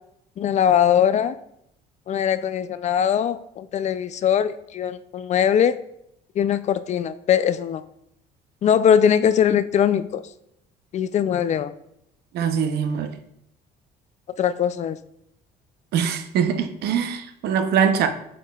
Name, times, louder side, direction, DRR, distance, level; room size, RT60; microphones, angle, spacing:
voice 1, 0.4-1.4 2.1-5.8 6.4-7.8 8.6-10.2 10.9-11.7 14.4-15.0, left 9 dB, 45° left, 13 dB, 0.4 m, -21 dB
voice 2, 12.3-13.1 15.9-18.1, right 7 dB, 75° right, 7 dB, 0.7 m, -22 dB
8.5 x 5.1 x 2.3 m, 0.76 s
cardioid pair, 110°, 17 cm